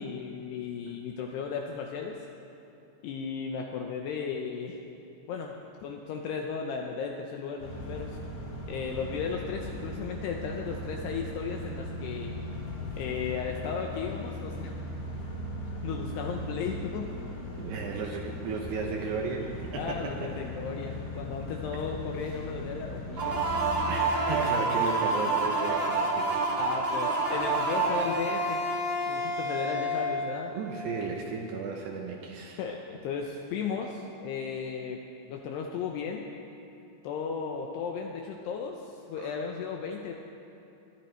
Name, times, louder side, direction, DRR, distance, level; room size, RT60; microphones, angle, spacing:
voice 1, 0.0-2.2 3.0-4.8 5.3-5.5 5.8-8.1 8.7-12.3 13.0-14.7 15.8-17.1 19.7-23.4 26.6-28.7 29.1-30.5 32.6-35.0 35.3-36.3 37.0-40.1, left 6 dB, 80° left, 1 dB, 2.5 m, -35 dB
sound 1, 7.6-23.9, left 1 dB, 60° left, 5.2 m, -38 dB
voice 2, 17.6-20.3 23.9-26.3 30.5-32.6 39.2-39.4, right 5 dB, 75° right, 1 dB, 2.6 m, -35 dB
sound 2, 23.2-30.7, right 2 dB, 45° right, 1.5 m, -28 dB
21.5 x 11.5 x 4.5 m, 2.9 s
omnidirectional pair, 5.6 m